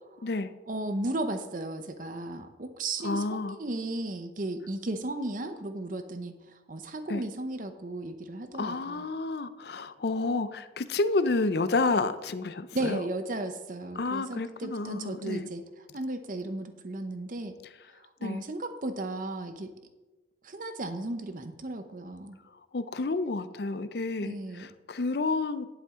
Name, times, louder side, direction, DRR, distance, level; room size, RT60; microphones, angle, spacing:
voice 1, 0.7-6.3 6.7-9.1 12.7-15.6 15.9-17.5 18.2-19.7 20.4-22.4 24.2-24.7, right 2 dB, 45° right, 9 dB, 0.7 m, -35 dB
voice 2, 3.0-3.6 7.1-7.2 8.6-13.0 14.0-15.5 18.2-18.4 22.7-25.7, left 3 dB, 60° left, 12 dB, 0.5 m, -30 dB
10.5 x 8.4 x 3.7 m, 1.2 s
head